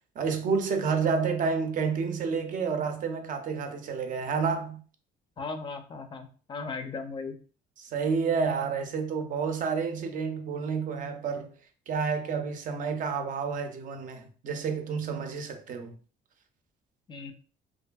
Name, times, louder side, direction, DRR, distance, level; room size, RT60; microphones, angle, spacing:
voice 1, 0.2-4.8 7.8-11.5 11.9-15.9, right 5 dB, 50° right, 0.5 m, -29 dB
voice 2, 5.4-7.4 17.1-17.3, left 4 dB, 30° left, 0.4 m, -37 dB
2.6 x 2.5 x 2.2 m
cardioid pair, 110°, 17 cm